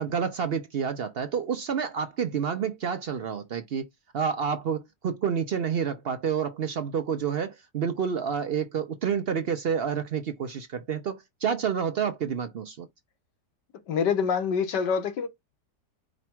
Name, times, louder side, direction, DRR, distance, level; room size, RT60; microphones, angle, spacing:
voice 1, 0.0-3.9 4.1-12.9, right 7 dB, 70° right, 0.5 m, -29 dB
voice 2, 13.9-15.3, left 6 dB, 90° left, 1.7 m, -25 dB
5.1 x 2.3 x 4.4 m
omnidirectional pair, 1.8 m